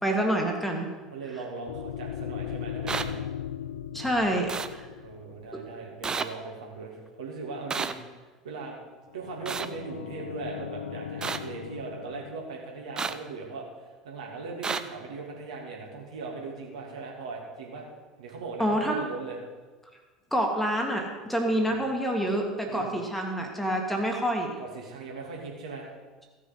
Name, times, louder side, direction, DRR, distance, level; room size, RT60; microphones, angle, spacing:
voice 1, 0.0-0.9 3.9-4.9 5.5-5.6 18.6-19.0 20.3-24.6, right 1 dB, 5° left, 2 dB, 1.8 m, -27 dB
voice 2, 1.1-3.2 5.0-8.8 9.1-17.8 18.2-19.4 21.5-21.8 22.7-22.9 24.6-25.9, right 4 dB, 65° right, -1 dB, 2.7 m, -39 dB
sound 1, 1.7-6.1 9.1-12.4, left 9 dB, 70° left, 0.5 m, -38 dB
sound 2, 2.9-3.0 4.5-4.7 6.0-6.3 7.7-7.9 9.5-9.7 11.2-11.4 13.0-13.1 14.6-14.8, right 5 dB, 20° right, 0.6 m, -30 dB
15.5 x 6.5 x 5.4 m, 1.3 s
figure-of-eight pair, 70°, 4 cm